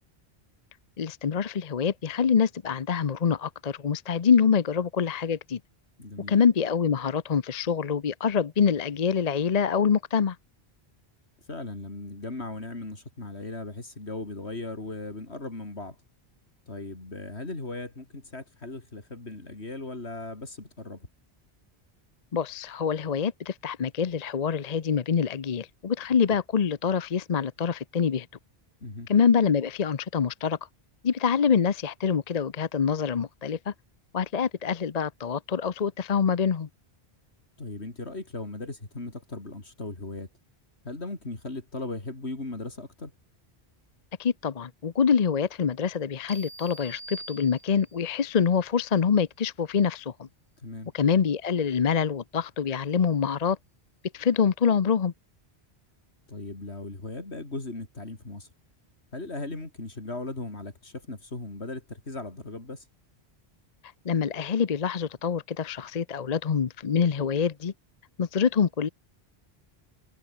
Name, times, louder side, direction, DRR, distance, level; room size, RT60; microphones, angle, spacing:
voice 1, 1.0-5.6 6.3-10.4 22.3-28.3 29.1-30.6 31.0-33.7 34.1-36.7 44.2-50.3 50.9-53.6 54.1-55.1 64.0-67.7 68.2-68.9, left 6 dB, 40° left, 0.8 m, -25 dB
voice 2, 6.0-6.3 11.5-16.0 16.7-21.1 26.3-26.4 28.8-29.1 37.6-40.3 40.8-43.1 50.6-50.9 56.3-58.5 59.1-62.8, left 2 dB, 85° left, 4.4 m, -37 dB
sound 1, 46.3-48.1, right 2 dB, 40° right, 3.5 m, -44 dB
omnidirectional pair, 1.1 m